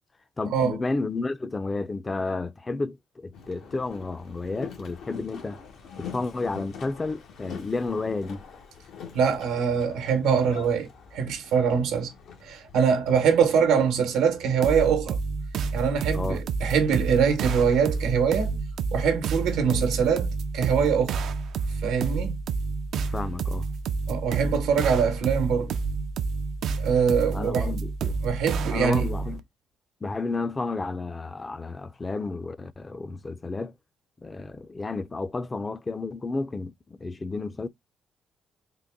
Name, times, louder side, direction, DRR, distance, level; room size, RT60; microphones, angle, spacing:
voice 1, 0.4-5.6 6.0-8.4 16.1-16.4 23.1-23.7 27.3-28.1 28.7-29.4 30.0-33.8 34.2-37.7, left 3 dB, 25° left, 0.4 m, -31 dB
Boat Water vehicle, 3.3-14.7, left 6 dB, 80° left, 1.0 m, -44 dB
voice 2, 9.1-12.1 12.4-15.2 15.7-18.6 18.9-21.2 21.8-22.4 24.1-25.7 26.8-27.7 28.2-29.1, right 6 dB, 90° right, 1.0 m, -23 dB
sound 1, 14.6-29.4, right 4 dB, 75° right, 0.4 m, -29 dB
3.8 x 2.1 x 3.5 m
cardioid pair, 90°, 0 cm